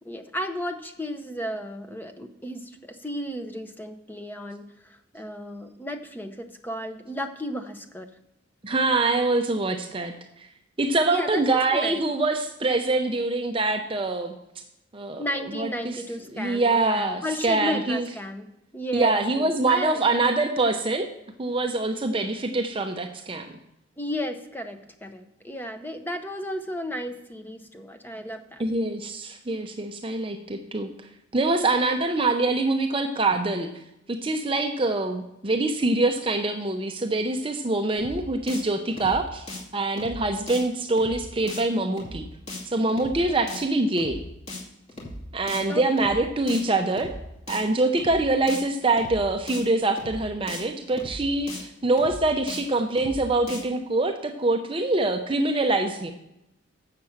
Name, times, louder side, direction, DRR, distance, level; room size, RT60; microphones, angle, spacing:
voice 1, 0.0-8.1 11.1-11.4 11.7-12.0 15.2-18.5 18.7-20.0 24.0-28.6 45.7-46.1, equal, 10° left, 7 dB, 0.7 m, -34 dB
voice 2, 8.6-10.1 10.8-14.3 14.9-15.2 15.5-16.0 16.3-18.1 18.9-21.1 21.4-23.5 28.6-30.9 31.3-33.7 34.1-39.5 39.7-42.3 42.6-44.2 45.3-47.1 47.5-56.1, right 2 dB, 25° right, 5 dB, 0.6 m, -24 dB
sound 1, 38.0-38.2 38.5-38.6 38.9-39.2 39.5-39.6 40.0-40.2 40.5-40.6 40.9-41.2 41.5-41.6 42.0-42.2 42.5-42.6 42.9-43.2 43.5-43.6 44.0-44.2 44.5-44.6 44.9-45.2 45.5-45.6 46.0-46.2 46.5-46.6 46.9-47.2 47.5-47.6 48.0-48.2 48.5-48.6 48.9-49.2 49.5-49.6 50.0-50.2 50.5-50.6 50.9-51.2 51.5-51.6 52.0-52.2 52.5-52.6 52.9-53.2 53.5-53.6, left 2 dB, 30° left, 2.4 m, -37 dB
7.5 x 6.7 x 7.2 m, 0.86 s
head